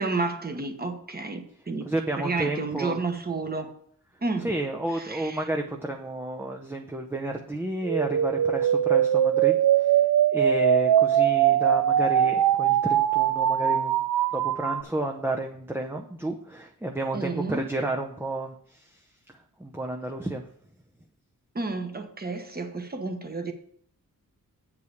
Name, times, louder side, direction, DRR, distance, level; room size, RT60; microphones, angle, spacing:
voice 1, 0.0-1.9 2.2-3.7 4.2-4.5 4.9-5.4 17.1-17.6 21.5-23.5, right 3 dB, 25° right, 1.2 m, -31 dB
voice 2, 1.8-3.0 4.4-10.0 10.3-14.1 14.3-19.0 19.6-20.4, right 2 dB, 5° right, 0.6 m, -31 dB
sound 1, 7.8-14.8, right 10 dB, 80° right, 0.5 m, -22 dB
8.3 x 4.8 x 7.0 m
wide cardioid pair, 135°, 35 cm